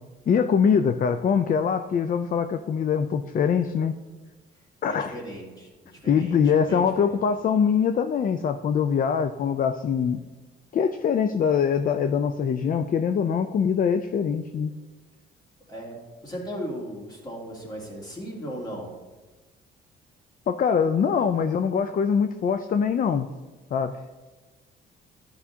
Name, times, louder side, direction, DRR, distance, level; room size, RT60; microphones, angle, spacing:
voice 1, 0.3-3.9 4.8-5.2 6.1-10.2 10.7-14.7 20.5-23.3 23.7-23.9, left 7 dB, 45° left, 9 dB, 0.4 m, -23 dB
voice 2, 4.9-7.2 15.7-18.9, equal, 20° left, -3 dB, 2.6 m, -37 dB
12.0 x 5.7 x 2.8 m, 1.3 s
cardioid pair, 90°, 20 cm